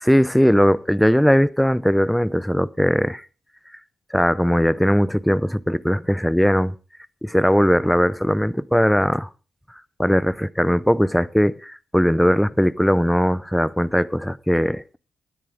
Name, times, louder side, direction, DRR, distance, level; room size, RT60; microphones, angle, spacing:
voice 1, 0.0-3.2 4.1-6.7 7.2-9.3 10.0-15.0, equal, 5° left, 0.6 m, -19 dB
16.0 x 10.5 x 3.6 m
cardioid pair, 60°, 0 cm